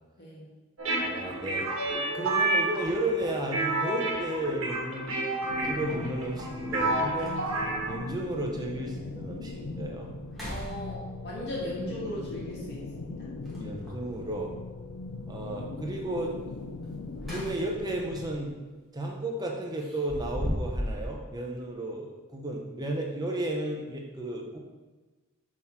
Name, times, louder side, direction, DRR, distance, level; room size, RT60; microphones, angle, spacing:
sound 1, 0.8-8.0, right 2 dB, 70° right, 1.4 m, -30 dB
voice 1, 1.0-1.7 2.1-5.2 5.6-7.4 7.8-10.2 13.6-14.5 15.3-16.4 17.3-18.5 18.9-24.6, right 1 dB, 20° right, 0 dB, 0.7 m, -33 dB
sound 2, 4.5-4.6 6.3-6.4 6.8-6.9 7.2-7.7 8.3-8.4 8.9-9.0 9.4-9.8 10.2-11.3 13.4-14.1 16.8-17.9 18.3-18.5 19.8-21.1, equal, ahead, 1.4 m, -36 dB
sound 3, 5.5-18.4, left 3 dB, 80° left, 0.5 m, -40 dB
voice 2, 10.4-13.2, left 1 dB, 50° left, -4 dB, 1.7 m, -37 dB
6.2 x 3.6 x 4.4 m, 1.3 s
head